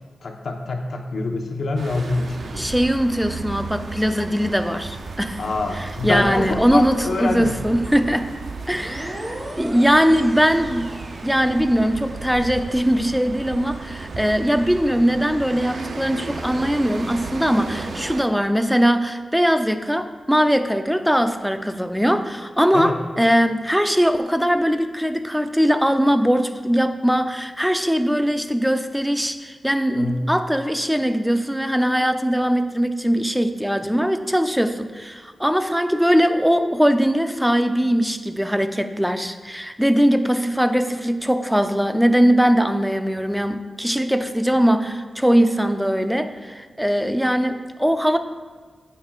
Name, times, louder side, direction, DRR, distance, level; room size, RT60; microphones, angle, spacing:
voice 1, 0.2-2.6 5.4-7.6 22.7-23.0 29.9-30.2, left 3 dB, 70° left, 2 dB, 1.0 m, -25 dB
sound 1, 1.8-18.2, right 4 dB, 65° right, 0.6 m, -34 dB
voice 2, 2.5-5.4 5.8-8.3 8.7-10.9 11.2-48.2, equal, ahead, 7 dB, 0.5 m, -20 dB
sound 2, 8.6-12.1, equal, 20° right, 1.3 m, -38 dB
14.5 x 5.6 x 2.4 m, 1.4 s
wide cardioid pair, 115°, 0 cm